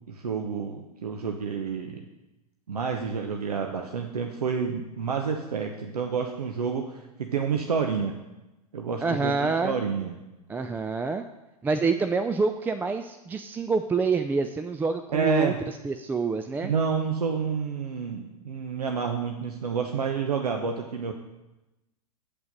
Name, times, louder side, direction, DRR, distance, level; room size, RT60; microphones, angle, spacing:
voice 1, 0.1-2.1 2.7-8.1 8.7-10.2 15.1-15.6 16.6-21.1, right 6 dB, 80° right, 4 dB, 0.9 m, -29 dB
voice 2, 9.0-9.7 10.5-11.2 11.6-15.5 15.8-16.7, right 4 dB, 10° right, 9 dB, 0.3 m, -27 dB
8.5 x 8.4 x 5.3 m, 1.0 s
figure-of-eight pair, 100°, 20 cm